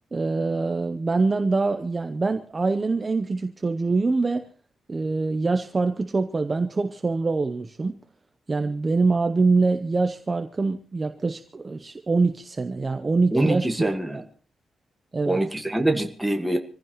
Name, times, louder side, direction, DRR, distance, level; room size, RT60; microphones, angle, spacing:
voice 1, 0.1-4.4 4.9-8.0 8.5-13.7 14.1-14.2 15.1-15.4, right 3 dB, 20° right, 7 dB, 0.7 m, -24 dB
voice 2, 13.3-14.2 15.3-16.6, right 1 dB, 5° right, 4 dB, 1.7 m, -24 dB
26.0 x 15.5 x 3.1 m, 0.39 s
wide cardioid pair, 175°, 0 cm